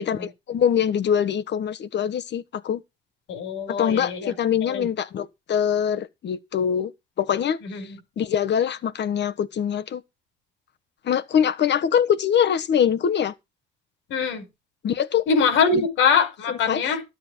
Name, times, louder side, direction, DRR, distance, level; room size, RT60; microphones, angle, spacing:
voice 1, 0.0-2.8 3.8-6.9 7.2-10.0 11.0-13.3 14.8-15.3 15.7-15.9 16.5-16.8, left 8 dB, 60° left, 1.4 m, -23 dB
voice 2, 3.3-4.3 4.6-4.9 7.6-7.9 14.1-14.4 15.3-17.0, left 5 dB, 90° left, 5.2 m, -23 dB
12.5 x 7.8 x 4.7 m
cardioid pair, 90°, 20 cm